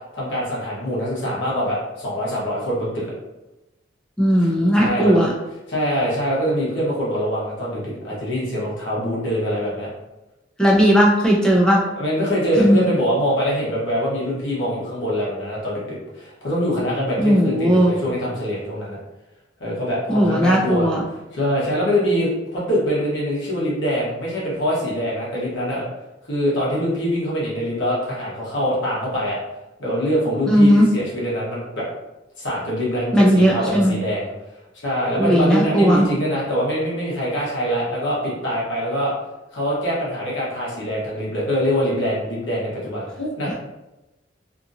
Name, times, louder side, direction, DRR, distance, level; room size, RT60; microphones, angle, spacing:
voice 1, 0.1-3.1 4.4-5.1 5.7-9.9 12.0-19.0 19.6-20.9 21.3-25.8 26.3-29.4 29.8-31.8 32.4-34.3 34.8-39.1 39.5-43.5, equal, 75° left, -6 dB, 1.1 m, -24 dB
voice 2, 4.2-5.3 10.6-11.8 12.6-12.8 17.2-17.9 20.1-21.0 30.5-30.9 33.1-33.9 35.2-36.1 43.5-43.6, equal, 5° left, -4 dB, 0.6 m, -16 dB
2.8 x 2.5 x 2.7 m, 1.0 s
head